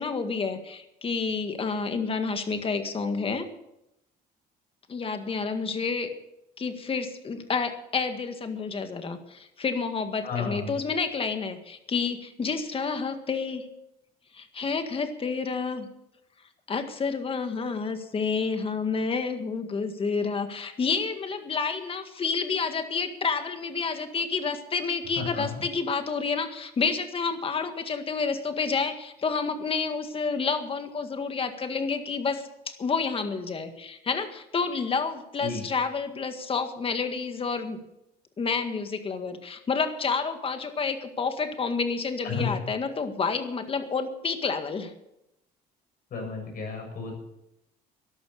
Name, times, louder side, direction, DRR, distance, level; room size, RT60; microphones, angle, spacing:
voice 1, 0.0-3.5 4.9-6.1 6.6-13.7 14.3-15.9 16.7-37.8 38.4-44.9, left 5 dB, 35° left, 7 dB, 1.8 m, -29 dB
voice 2, 10.2-10.7 25.2-25.6 35.4-35.6 42.2-42.5 46.1-47.2, left 5 dB, 55° left, 1 dB, 7.2 m, -32 dB
13.0 x 11.5 x 6.8 m, 0.85 s
cardioid pair, 110°, 17 cm